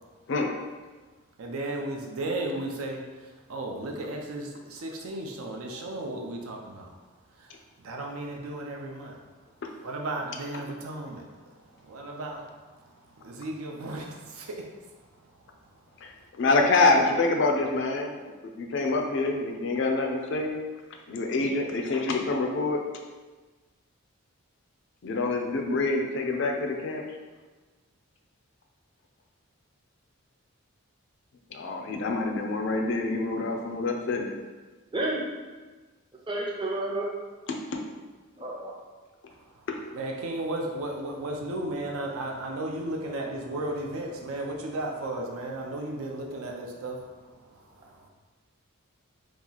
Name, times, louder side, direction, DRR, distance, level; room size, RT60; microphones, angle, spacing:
voice 1, 1.4-6.9 7.4-7.5 7.8-9.2 9.8-11.5 11.8-12.5 13.1-14.7 39.3-39.7 39.9-48.1, right 1 dB, 80° right, 1 dB, 0.5 m, -35 dB
voice 2, 16.0-18.2 18.6-20.6 21.1-22.8 25.0-27.0 31.5-34.3 37.5-37.8 39.7-39.8, left 3 dB, 55° left, 3 dB, 0.4 m, -26 dB
voice 3, 36.3-37.1 38.4-38.7, right 2 dB, 20° right, -2 dB, 0.5 m, -30 dB
2.9 x 2.3 x 3.9 m, 1.3 s
head